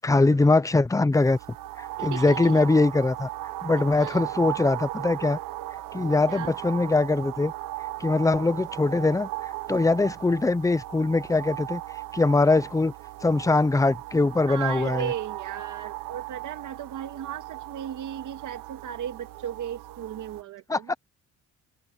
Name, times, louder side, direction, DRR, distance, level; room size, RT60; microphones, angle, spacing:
voice 1, 0.0-1.4 2.0-3.3 3.6-5.4 5.9-7.5 8.0-9.3 9.7-11.8 12.1-12.9 13.2-15.1 20.7-20.9, left 3 dB, 10° left, 0.7 m, -22 dB
sound 1, 1.1-20.4, right 16 dB, 90° right, 1.1 m, -37 dB
voice 2, 2.0-2.7 4.0-4.3 6.3-6.5 14.5-20.9, right 10 dB, 65° right, 2.3 m, -36 dB
cardioid pair, 120°, 33 cm